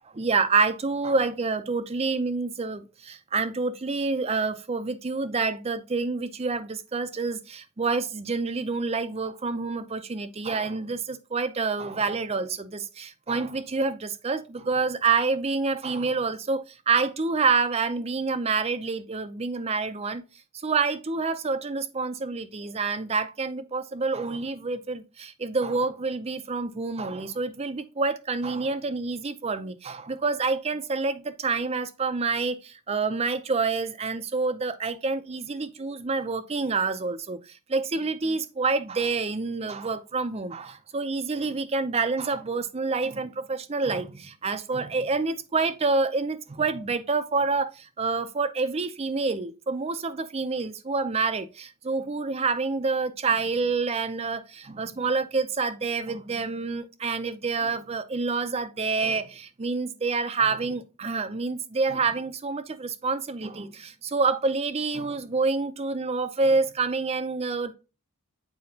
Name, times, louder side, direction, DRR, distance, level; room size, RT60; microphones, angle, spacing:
voice 1, 0.1-20.2 20.5-67.7, right 4 dB, 30° right, 0.5 m, -27 dB
7.7 x 4.7 x 2.7 m
head